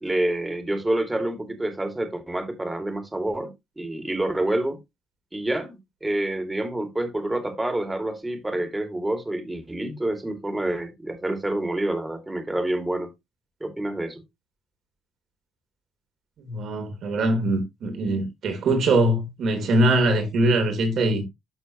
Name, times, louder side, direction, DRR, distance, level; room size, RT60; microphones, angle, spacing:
voice 1, 0.0-4.8 5.3-13.1 13.6-14.2, right 1 dB, 15° right, 2.6 m, -28 dB
voice 2, 16.4-21.3, right 1 dB, 70° right, 3.7 m, -22 dB
12.5 x 4.2 x 3.1 m
cardioid pair, 90°, 0 cm